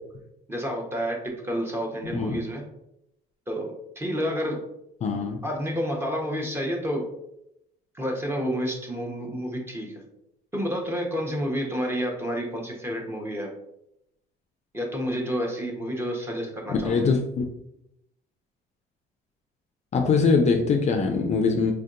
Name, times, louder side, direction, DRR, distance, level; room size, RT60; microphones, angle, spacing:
voice 1, 0.5-1.2 1.4-2.6 3.5-3.7 4.0-4.6 5.4-7.0 7.9-9.9 10.5-13.5 14.7-17.1, equal, 15° right, 0 dB, 0.9 m, -29 dB
voice 2, 5.0-5.4 16.7-17.5 19.9-21.7, left 4 dB, 40° left, 4 dB, 0.4 m, -22 dB
4.5 x 2.6 x 2.5 m, 0.80 s
cardioid pair, 110°, 17 cm